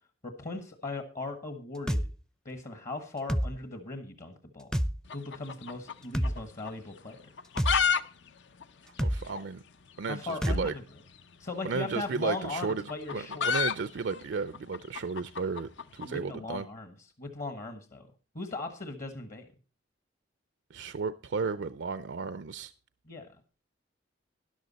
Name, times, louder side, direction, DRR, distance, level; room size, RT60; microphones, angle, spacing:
voice 1, 0.2-2.0 2.4-4.7 5.1-7.2 10.0-10.8 11.4-13.5 16.0-18.1 18.3-19.5 23.1-23.3, left 3 dB, 45° left, 1.3 m, -38 dB
sound 1, 1.9-2.1 3.3-3.5 4.7-4.9 6.1-6.3 7.6-7.8 9.0-9.2 10.4-10.6, equal, 5° left, 0.5 m, -27 dB
sound 2, 5.1-6.4 6.7-6.8 7.3-8.0 8.3-8.4 8.6-8.7 9.3-9.4 10.6-10.8 11.9-16.1, left 6 dB, 70° left, 0.7 m, -30 dB
voice 2, 9.0-9.6 10.0-10.7 11.6-12.8 13.1-16.7 20.7-22.7, right 4 dB, 65° right, 0.5 m, -34 dB
13.0 x 11.0 x 4.1 m
head